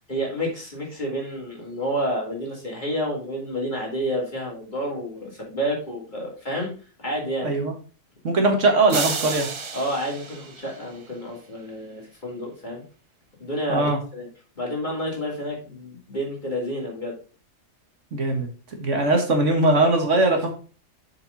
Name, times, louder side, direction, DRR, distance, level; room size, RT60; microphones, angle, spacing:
voice 1, 0.1-6.7 7.0-7.5 9.7-12.8 13.4-14.3 14.6-17.1, equal, 35° left, -2 dB, 2.9 m, -29 dB
voice 2, 7.4-7.7 8.2-9.5 13.7-14.0 18.1-18.5 18.8-20.5, right 2 dB, 65° right, 3 dB, 1.8 m, -20 dB
sound 1, 8.9-11.2, right 5 dB, 45° right, 0.4 m, -31 dB
7.1 x 5.2 x 4.0 m, 0.36 s
omnidirectional pair, 1.3 m